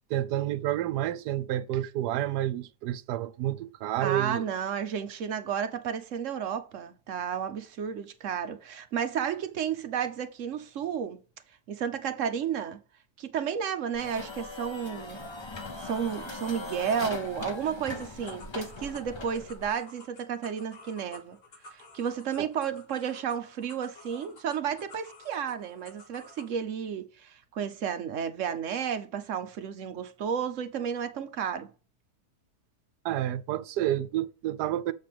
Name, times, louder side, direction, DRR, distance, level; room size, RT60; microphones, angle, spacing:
voice 1, 0.1-4.4 22.4-22.5 33.0-34.9, right 13 dB, 80° right, 1.2 m, -29 dB
voice 2, 4.0-11.2 11.7-12.8 13.2-15.2 15.8-21.4 21.7-31.7, right 8 dB, 60° right, 1.0 m, -32 dB
sound 1, 13.9-19.7, left 3 dB, 30° left, 0.5 m, -40 dB
sound 2, 17.8-26.5, left 2 dB, 75° left, 2.5 m, -52 dB
7.5 x 3.3 x 5.9 m
omnidirectional pair, 1.7 m